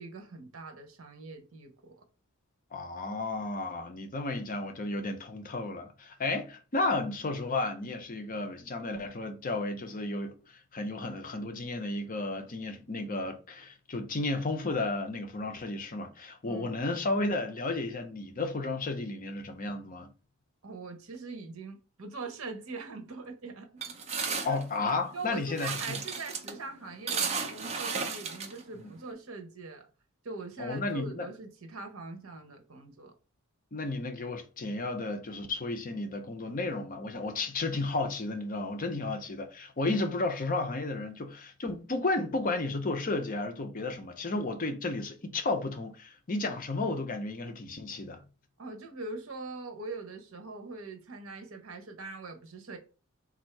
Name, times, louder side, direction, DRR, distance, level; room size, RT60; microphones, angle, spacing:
voice 1, 0.0-2.0 16.4-16.7 20.6-23.8 24.2-24.6 25.1-29.9 30.2-33.1 48.6-52.8, right 3 dB, 75° right, 0.9 m, -42 dB
voice 2, 2.7-20.1 24.4-26.0 28.8-28.9 30.6-31.3 33.7-48.2, left 2 dB, 40° left, 0.6 m, -33 dB
sound 1, 23.8-29.1, right 5 dB, 30° right, 0.7 m, -35 dB
3.6 x 2.7 x 4.5 m
head